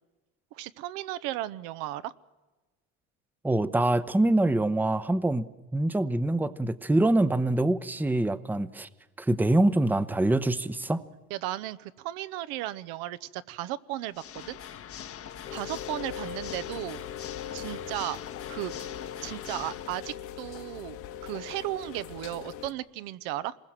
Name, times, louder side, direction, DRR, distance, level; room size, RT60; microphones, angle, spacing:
voice 1, 0.5-2.1 11.3-14.6 15.5-17.0 17.5-18.2 18.5-18.7 19.2-23.6, right 14 dB, 70° right, 14 dB, 0.9 m, -35 dB
voice 2, 3.4-8.9 9.2-11.0, right 2 dB, 5° right, 15 dB, 0.8 m, -25 dB
Water / Mechanisms, 14.1-20.1, left 9 dB, 35° left, 1.1 m, -42 dB
Rain, 15.4-22.7, left 10 dB, 70° left, 1.9 m, -40 dB
27.0 x 20.5 x 7.5 m, 1.2 s
supercardioid pair, 90°, 38 cm